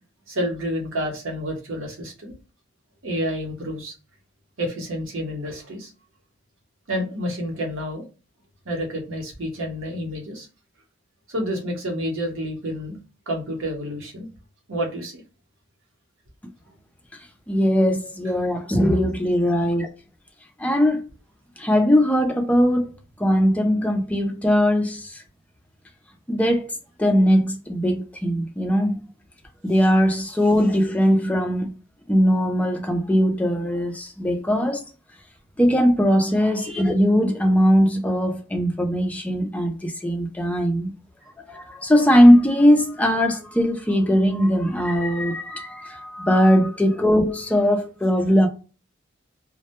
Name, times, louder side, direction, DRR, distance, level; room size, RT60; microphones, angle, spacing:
voice 1, 0.3-2.3 3.0-3.9 4.6-5.9 6.9-8.1 8.6-10.5 11.3-13.0 13.3-14.3 14.7-15.2 36.6-36.8, equal, 90° right, 0.9 m, -29 dB
voice 2, 17.5-19.9 20.6-21.1 21.6-22.9 23.2-25.2 26.3-26.7 27.0-29.0 29.6-31.7 32.1-34.8 35.6-40.9 41.5-48.5, equal, 5° left, 0.3 m, -20 dB
2.1 x 2.1 x 2.8 m
head